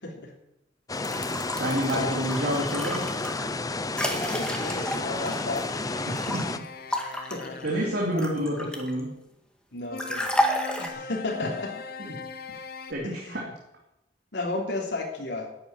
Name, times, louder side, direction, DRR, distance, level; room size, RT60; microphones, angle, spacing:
sound 1, 0.9-6.6, left 3 dB, 20° left, 0.6 m, -31 dB
sound 2, 0.9-6.4 6.9-9.0 10.0-10.9, equal, 5° left, 1.8 m, -31 dB
voice 1, 1.6-3.3 6.1-6.7 7.6-9.2 12.5-12.6 12.9-13.5, equal, 65° right, -1 dB, 2.6 m, -29 dB
voice 2, 4.0-5.7 7.0-7.6 8.1-8.3 9.7-10.3 10.8-11.7 13.0-13.4 14.3-15.5, left 2 dB, 80° left, -1 dB, 3.3 m, -33 dB
sound 3, 4.1-8.0 9.9-12.9, left 5 dB, 60° left, 1.1 m, -41 dB
12.0 x 8.8 x 9.4 m, 0.86 s
head